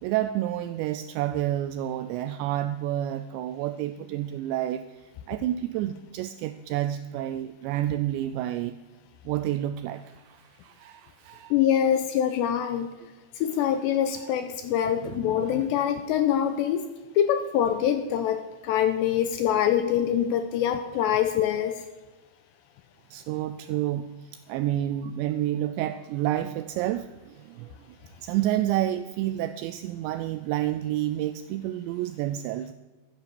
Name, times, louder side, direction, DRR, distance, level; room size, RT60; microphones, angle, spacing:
voice 1, 0.0-8.8 9.3-11.5 14.2-14.3 15.0-15.6 23.1-32.7, right 13 dB, 85° right, 10 dB, 2.5 m, -30 dB
voice 2, 11.5-12.9 13.4-16.9 17.2-21.8, left 9 dB, 85° left, 8 dB, 2.6 m, -24 dB
13.5 x 9.3 x 6.9 m, 1.2 s
omnidirectional pair, 5.6 m